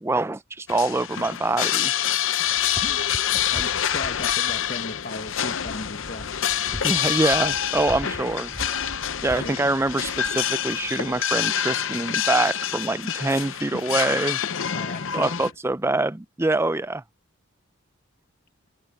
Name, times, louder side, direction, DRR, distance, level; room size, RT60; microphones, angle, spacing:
voice 1, 0.0-1.9 6.8-8.5 9.2-14.4 15.1-17.0, right 2 dB, 10° right, 0.4 m, -25 dB
sound 1, 0.7-15.5, left 10 dB, 60° left, 0.7 m, -26 dB
sound 2, 2.5-11.2, equal, 5° left, 2.4 m, -42 dB
voice 2, 3.3-6.3 9.4-9.7 13.1-13.2 14.7-15.5, left 2 dB, 45° left, 1.5 m, -36 dB
head